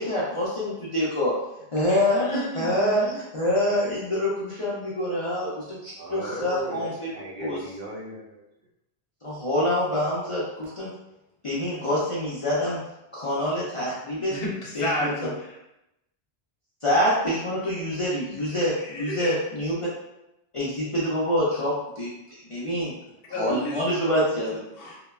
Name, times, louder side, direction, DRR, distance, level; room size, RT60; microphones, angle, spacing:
voice 1, 0.0-1.3 1.7-7.1 7.4-7.6 9.2-10.9 11.4-12.8 13.1-14.3 14.7-15.1 16.8-19.9 20.5-22.9 23.3-24.6, left 1 dB, 45° left, -8 dB, 0.4 m, -26 dB
voice 2, 1.8-3.2 14.3-15.6 18.5-19.4 23.3-23.8 24.3-25.0, left 1 dB, 70° left, -2 dB, 0.8 m, -32 dB
voice 3, 5.9-8.4, right 1 dB, 65° right, -4 dB, 0.8 m, -37 dB
2.8 x 2.1 x 2.2 m, 0.89 s
omnidirectional pair, 1.1 m